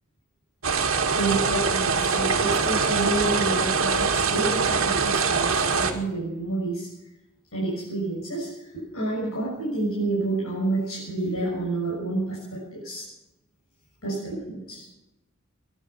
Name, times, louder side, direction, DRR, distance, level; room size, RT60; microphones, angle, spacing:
sound 1, 0.6-5.9, right 5 dB, 70° right, 2.0 m, -23 dB
voice 1, 1.1-6.9 7.5-8.5 8.7-13.0 14.0-14.8, right 2 dB, 80° left, -5 dB, 6.9 m, -29 dB
21.0 x 11.0 x 6.0 m, 0.94 s
head